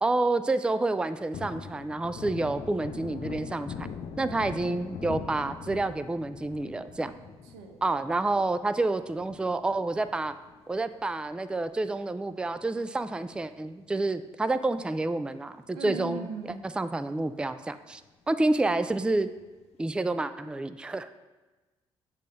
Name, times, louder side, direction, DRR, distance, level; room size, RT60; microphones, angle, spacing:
voice 1, 0.0-3.9 4.2-7.1 7.8-10.3 10.7-16.3 16.6-18.0 18.3-19.3 19.8-21.1, right 2 dB, 10° right, 12 dB, 0.3 m, -29 dB
Thunder, 0.9-11.6 12.0-12.1 12.5-14.0 14.3-14.4 14.8-15.6 16.0-16.1 16.4-16.5 18.9-19.4, left 6 dB, 60° left, 0.5 m, -43 dB
voice 2, 15.7-16.6, right 4 dB, 90° right, 4 dB, 0.7 m, -39 dB
6.6 x 3.4 x 5.2 m, 1.2 s
supercardioid pair, 55°, 12 cm